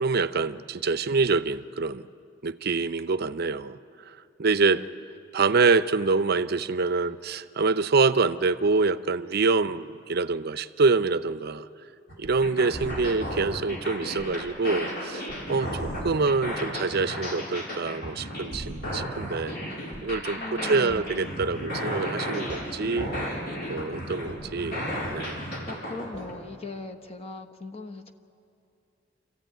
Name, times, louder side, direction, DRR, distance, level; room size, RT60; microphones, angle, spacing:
voice 1, 0.0-2.1 2.4-3.8 4.4-4.8 5.3-11.7 12.2-19.5 20.0-23.1 23.7-24.9 25.1-25.4, right 4 dB, 55° right, 12 dB, 0.6 m, -25 dB
sound 1, 12.1-26.3, equal, 55° left, 4.3 m, -33 dB
voice 2, 20.4-21.1 25.7-28.1, left 3 dB, 30° left, 4 dB, 1.2 m, -39 dB
26.5 x 14.5 x 9.1 m, 2.6 s
head